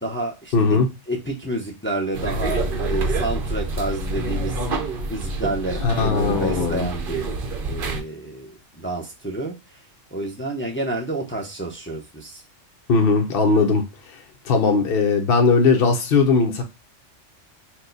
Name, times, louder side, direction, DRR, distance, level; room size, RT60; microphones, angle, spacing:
voice 1, 0.0-0.8 1.1-7.3 7.7-9.8 10.1-12.4, right 2 dB, 10° left, 0.6 m, -29 dB
voice 2, 0.5-0.9 5.8-6.9 12.9-13.8 14.5-16.6, left 4 dB, 55° left, 0.9 m, -18 dB
sound 1, 2.1-8.0, right 2 dB, 50° right, 0.8 m, -27 dB
4.5 x 2.2 x 3.9 m
omnidirectional pair, 1.3 m